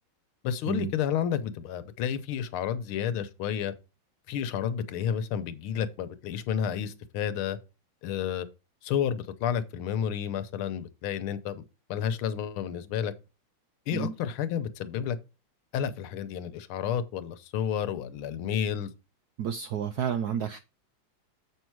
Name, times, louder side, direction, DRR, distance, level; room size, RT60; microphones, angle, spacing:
voice 1, 0.4-3.7 4.3-7.6 8.0-8.5 8.8-11.6 11.9-13.1 13.9-15.2 15.7-18.9, left 9 dB, 85° left, 1.7 m, -31 dB
voice 2, 19.4-20.6, right 8 dB, 80° right, 0.9 m, -30 dB
7.7 x 5.6 x 4.6 m
omnidirectional pair, 2.3 m